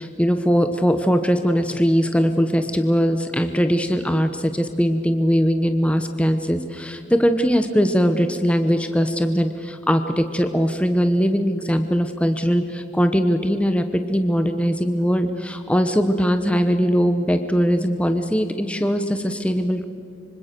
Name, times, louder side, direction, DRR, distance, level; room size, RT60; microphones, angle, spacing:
voice 1, 0.0-19.8, equal, 5° left, 8 dB, 1.0 m, -20 dB
25.5 x 25.0 x 6.8 m, 2.4 s
head